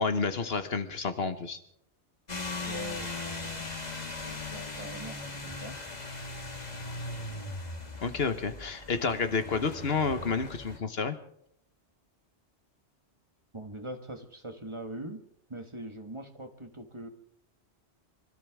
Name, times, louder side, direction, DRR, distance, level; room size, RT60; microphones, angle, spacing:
voice 1, 0.0-1.6 8.0-11.2, left 5 dB, 60° left, 10 dB, 1.4 m, -30 dB
sound 1, 2.3-10.8, left 3 dB, 35° left, 1.9 m, -39 dB
voice 2, 2.7-3.7 4.2-5.8 13.5-15.2 15.5-17.1, right 1 dB, 25° right, 6 dB, 1.5 m, -42 dB
25.5 x 14.0 x 3.6 m, 0.71 s
omnidirectional pair, 1.2 m